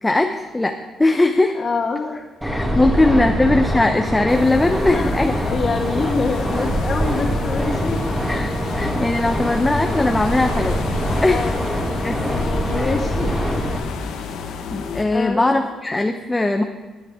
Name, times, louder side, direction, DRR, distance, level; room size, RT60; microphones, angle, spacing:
voice 1, 0.0-1.5 2.4-5.3 8.3-10.8 11.2-11.6 12.0-12.2 12.7-12.9 14.7-16.6, left 2 dB, 15° left, 5 dB, 0.8 m, -19 dB
voice 2, 1.5-2.3 2.7-3.3 4.9-8.1 11.3-12.0 12.2-13.9 15.1-15.6, left 4 dB, 45° left, -1 dB, 2.5 m, -26 dB
sound 1, 2.4-13.8, equal, 10° right, 2.6 m, -24 dB
sound 2, 4.3-15.0, left 5 dB, 90° left, 1.3 m, -31 dB
17.0 x 9.0 x 3.7 m, 1.3 s
cardioid pair, 90°, 0 cm